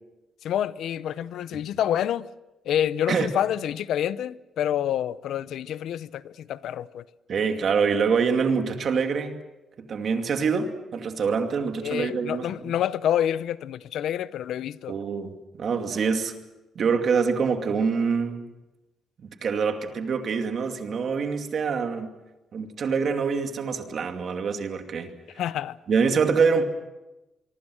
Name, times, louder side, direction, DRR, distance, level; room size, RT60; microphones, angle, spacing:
voice 1, 0.4-2.3 2.6-7.0 11.8-14.9 25.4-25.8, left 10 dB, 75° left, 0.7 m, -27 dB
voice 2, 7.3-9.4 9.8-12.8 14.9-16.4 16.7-18.4 19.2-22.1 22.5-25.1 25.9-26.6, right 5 dB, 50° right, 2.4 m, -25 dB
25.0 x 23.5 x 6.4 m
cardioid pair, 150°, 0 cm